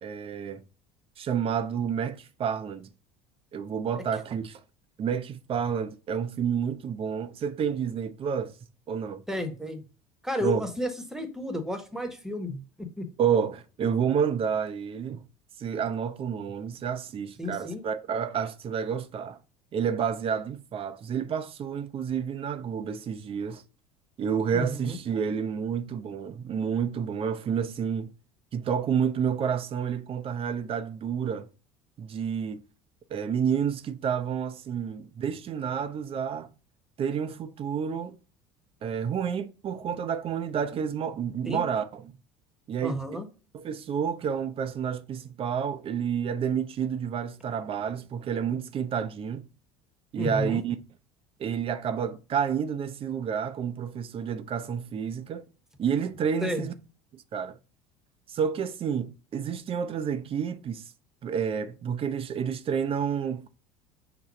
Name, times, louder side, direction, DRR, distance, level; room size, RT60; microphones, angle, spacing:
voice 1, 0.0-0.6 1.2-2.9 3.5-4.6 5.0-8.5 8.9-9.2 10.4-10.6 13.2-15.2 15.6-19.4 19.7-23.6 24.2-28.1 28.5-31.5 32.0-32.6 33.1-36.5 37.0-38.2 38.8-42.0 42.7-43.2 43.5-49.5 50.1-50.8 51.4-55.4 55.8-56.7 57.1-57.6 58.3-60.9 61.2-63.5, right 7 dB, 40° right, 0.6 m, -29 dB
voice 2, 9.3-9.8 10.2-13.1 17.4-17.9 24.5-25.0 41.4-41.6 42.8-43.3 50.2-50.6 56.4-56.7, left 1 dB, 5° right, 1.1 m, -32 dB
5.9 x 2.2 x 4.0 m
hypercardioid pair, 75°, 15 cm